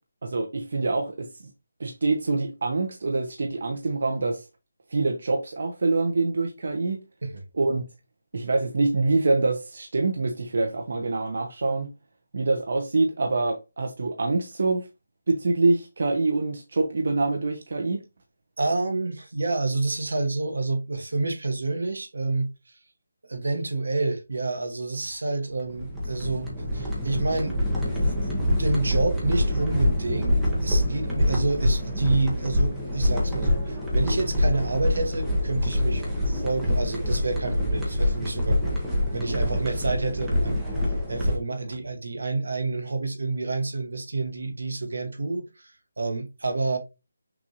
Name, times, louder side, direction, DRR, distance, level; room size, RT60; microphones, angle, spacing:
voice 1, 0.2-1.3 1.8-4.4 4.9-7.0 7.5-7.8 8.3-11.9 12.3-14.9 15.3-18.0, right 3 dB, 55° right, 0.7 m, -25 dB
voice 2, 18.6-22.5 23.3-27.6 27.9-38.8 39.1-40.6 41.1-46.8, right 3 dB, 80° right, 1.2 m, -28 dB
sound 1, 25.5-41.4, left 1 dB, 5° right, 0.8 m, -25 dB
6.0 x 2.5 x 2.9 m
figure-of-eight pair, 170°, 0 cm